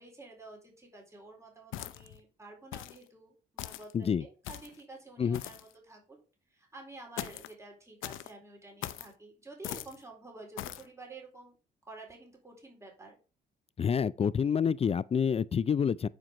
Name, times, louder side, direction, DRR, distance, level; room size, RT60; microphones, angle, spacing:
voice 1, 0.0-6.2 6.5-11.5 11.9-13.2, right 2 dB, 15° right, 4.1 m, -50 dB
sound 1, 1.7-2.2 2.7-3.0 3.6-3.9 4.4-4.8 5.3-5.7 7.2-7.5 8.0-8.3 8.8-9.1 9.6-10.0 10.6-10.9, left 14 dB, 85° left, 0.7 m, -40 dB
voice 2, 13.8-16.1, left 7 dB, 30° left, 0.4 m, -28 dB
10.0 x 4.6 x 5.1 m
cardioid pair, 90°, 20 cm